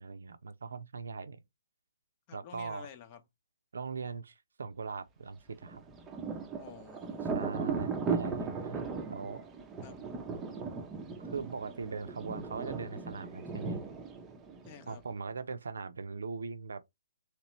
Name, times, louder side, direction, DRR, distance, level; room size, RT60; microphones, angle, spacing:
voice 1, 0.0-1.4 2.3-2.9 3.7-5.8 7.3-9.4 11.2-13.8 14.9-16.8, right 4 dB, 75° right, 0.6 m, -40 dB
voice 2, 2.3-3.2 6.6-7.5 9.8-10.0 14.6-15.0, left 8 dB, 35° left, 0.8 m, -50 dB
Thunder, 5.6-15.1, right 5 dB, 15° right, 0.6 m, -37 dB
3.2 x 2.9 x 3.0 m
hypercardioid pair, 140°, 0 cm